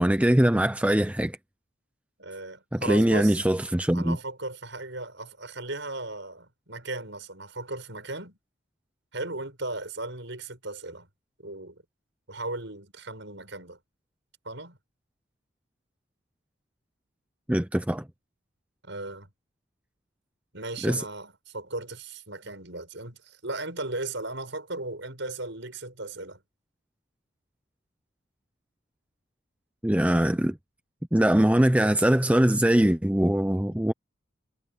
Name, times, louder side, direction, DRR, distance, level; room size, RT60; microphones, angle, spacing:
voice 1, 0.0-1.4 2.7-4.2 17.5-18.0 20.8-21.0 29.8-30.6 31.1-33.9, right 1 dB, 5° right, 0.5 m, -22 dB
voice 2, 2.2-3.4 3.9-8.4 9.1-11.1 11.4-11.8 12.3-13.8 14.4-14.8 18.8-19.3 20.5-26.4, right 2 dB, 60° right, 7.5 m, -36 dB
head